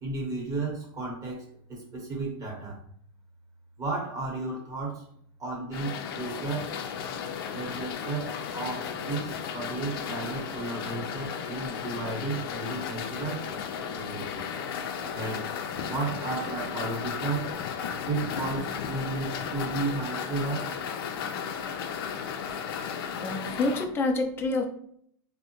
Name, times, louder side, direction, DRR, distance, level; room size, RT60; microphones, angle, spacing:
voice 1, 0.0-2.8 3.8-5.1 5.4-6.7 7.5-14.4 15.1-15.5 15.9-17.5 18.1-20.7, right 3 dB, 25° right, 0 dB, 1.1 m, -33 dB
sound 1, 5.7-23.8, left 7 dB, 80° left, 0.4 m, -34 dB
voice 2, 23.2-24.6, left 3 dB, 20° left, 2 dB, 0.4 m, -27 dB
3.5 x 2.1 x 2.9 m, 0.63 s
supercardioid pair, 130°, 12 cm